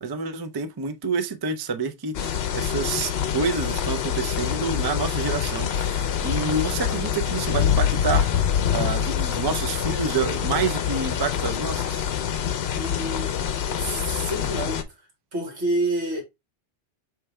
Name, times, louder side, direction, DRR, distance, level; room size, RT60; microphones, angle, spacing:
voice 1, 0.0-8.3 8.7-12.1, right 5 dB, 40° right, 0.3 m, -28 dB
sound 1, 2.1-14.8, left 9 dB, 65° left, 0.8 m, -25 dB
voice 2, 12.7-13.3 13.8-14.9 15.3-16.2, right 1 dB, 70° right, 1.9 m, -28 dB
4.6 x 3.2 x 3.1 m
omnidirectional pair, 1.2 m